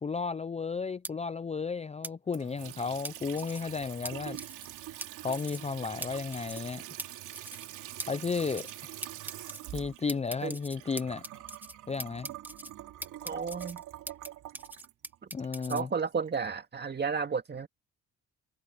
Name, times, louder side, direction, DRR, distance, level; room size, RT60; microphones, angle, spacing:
voice 1, 0.0-4.4 5.2-6.8 8.1-8.9 9.7-11.2 11.9-12.3 15.3-15.9, left 5 dB, 20° left, 0.5 m, -33 dB
sound 1, 1.0-1.1 2.0-2.1 3.0-3.6 4.0-4.1 4.4-4.7 5.0-5.1 5.3-5.7 6.0-6.1 6.3-6.7 7.0-7.1 7.3-7.7 8.0-8.1 8.4-8.8 9.0-9.6 10.1-11.7 12.0-12.7 13.0-14.3 14.5-15.8, right 1 dB, 5° right, 1.6 m, -41 dB
Water tap faucet / Sink (filling or washing) / Trickle dribble, 2.3-16.4, right 13 dB, 85° right, 3.2 m, -45 dB
voice 2, 13.2-13.8 15.7-17.7, right 5 dB, 35° right, 2.2 m, -32 dB
cardioid pair, 90°, 30 cm